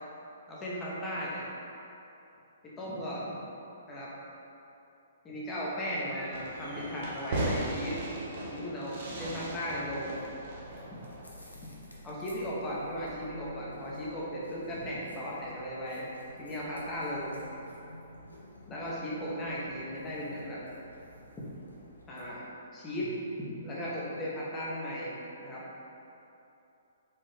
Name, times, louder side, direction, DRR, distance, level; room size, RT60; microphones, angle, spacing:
voice 1, 0.5-1.4 2.6-3.4 3.9-4.1 5.2-8.0 8.5-10.2 10.9-11.0 11.5-11.7 12.0-16.1 16.4-17.4 18.7-20.6 22.1-22.4 22.7-25.2 25.4-25.6, equal, 15° left, -6 dB, 0.9 m, -36 dB
Fireworks, 6.3-11.6, right 1 dB, 45° right, 0.8 m, -37 dB
sound 1, 10.1-22.2, left 1 dB, 80° left, 0.7 m, -51 dB
4.4 x 3.1 x 3.3 m, 2.9 s
figure-of-eight pair, 120°, 0 cm